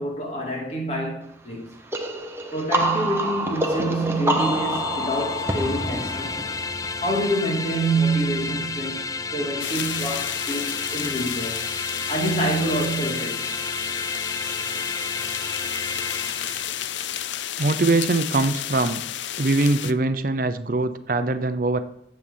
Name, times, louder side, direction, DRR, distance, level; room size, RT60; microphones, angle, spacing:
voice 1, 0.0-1.7 2.5-6.3 7.0-11.6 12.1-13.5, right 1 dB, 35° left, 2.7 m, -26 dB
sound 1, 1.9-7.5, right 1 dB, 15° right, 1.0 m, -27 dB
sound 2, 4.4-17.5, left 4 dB, 20° left, 0.4 m, -31 dB
sound 3, 9.6-19.9, left 11 dB, 80° left, 0.5 m, -32 dB
voice 2, 17.6-19.0 19.4-21.8, right 2 dB, 50° right, 0.6 m, -22 dB
9.8 x 7.7 x 5.6 m
head